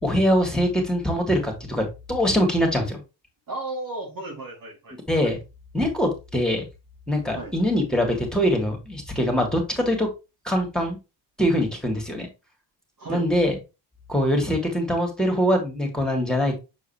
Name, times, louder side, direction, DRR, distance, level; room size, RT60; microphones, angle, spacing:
voice 1, 0.0-3.0 5.1-5.4 5.7-6.6 7.1-10.1 10.4-11.0 11.4-12.3 13.1-13.6 14.1-16.6, equal, ahead, 2.9 m, -23 dB
voice 2, 3.5-5.0 5.2-5.3 7.3-7.5 13.0-13.3, right 2 dB, 50° right, 2.7 m, -34 dB
7.1 x 4.6 x 3.0 m
supercardioid pair, 70°, 43 cm